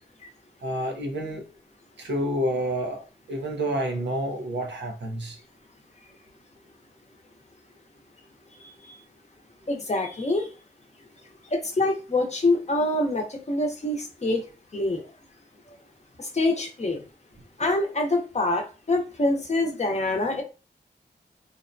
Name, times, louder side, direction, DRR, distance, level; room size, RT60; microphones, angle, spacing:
voice 1, 0.6-1.5 2.0-5.4 17.6-17.7, right 1 dB, 85° right, 0.6 m, -29 dB
voice 2, 8.6-9.0 9.7-10.5 11.5-14.4 14.7-15.0 16.2-17.0 17.6-20.4, left 2 dB, 40° left, 0.7 m, -25 dB
2.6 x 2.1 x 2.5 m
wide cardioid pair, 90°, 18 cm